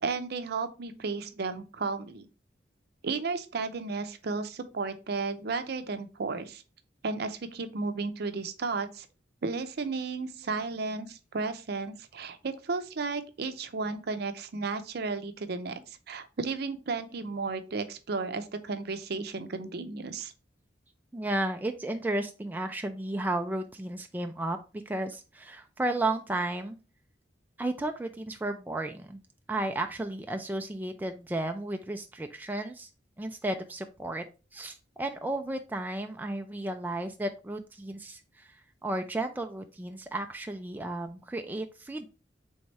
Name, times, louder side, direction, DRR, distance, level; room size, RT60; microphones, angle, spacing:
voice 1, 0.0-2.3 3.0-6.6 7.0-9.1 9.4-20.3, right 4 dB, 60° right, 9 dB, 0.6 m, -33 dB
voice 2, 21.1-26.8 27.6-29.2 29.5-32.9 33.2-34.2 34.5-38.5 38.8-42.1, right 2 dB, 10° right, 5 dB, 0.3 m, -33 dB
3.5 x 3.3 x 4.0 m, 0.32 s
head